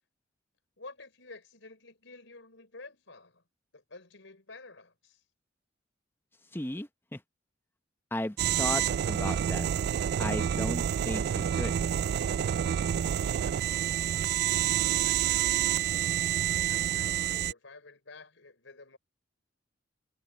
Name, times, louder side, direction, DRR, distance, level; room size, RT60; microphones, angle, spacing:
voice 1, 0.8-3.4 3.7-5.2 14.8-15.8 16.6-19.0, left 3 dB, 75° left, 5.1 m, -51 dB
voice 2, 6.5-7.2 8.1-9.7 10.2-11.8, left 1 dB, 10° left, 0.9 m, -35 dB
sound 1, 8.4-17.5, right 10 dB, 60° right, 0.3 m, -28 dB
head